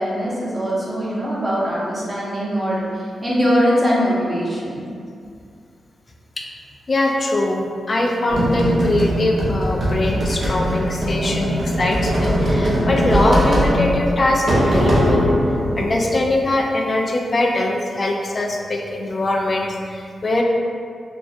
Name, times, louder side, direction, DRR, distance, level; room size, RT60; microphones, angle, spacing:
voice 1, 0.0-4.9, equal, 25° right, -6 dB, 0.7 m, -21 dB
voice 2, 6.9-15.3 15.8-20.4, left 1 dB, 40° left, 0 dB, 0.3 m, -22 dB
sound 1, 8.3-16.4, equal, 60° right, 0.5 m, -20 dB
2.2 x 2.2 x 2.6 m, 2.3 s
cardioid pair, 65°, 0 cm